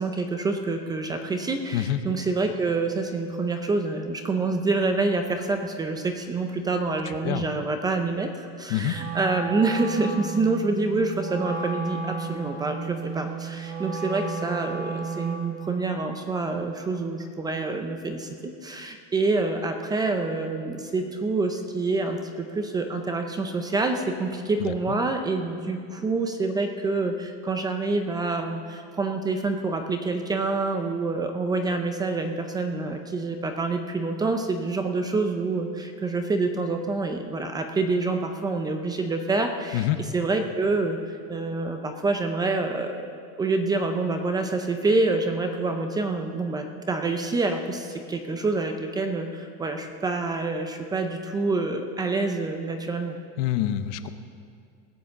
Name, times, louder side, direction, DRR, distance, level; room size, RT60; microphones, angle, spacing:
voice 1, 0.0-39.9 40.1-41.0 41.3-43.1 43.4-53.2, right 3 dB, 10° right, 5 dB, 0.5 m, -27 dB
voice 2, 7.1-7.4 8.7-9.0 24.6-24.7 39.7-40.0 53.4-54.1, left 12 dB, 60° left, 11 dB, 0.8 m, -26 dB
Wind instrument woodwind instrument, 8.9-15.6, right 5 dB, 90° right, 3.3 m, -33 dB
19.0 x 7.7 x 7.0 m, 2.3 s
cardioid pair, 165°, 33 cm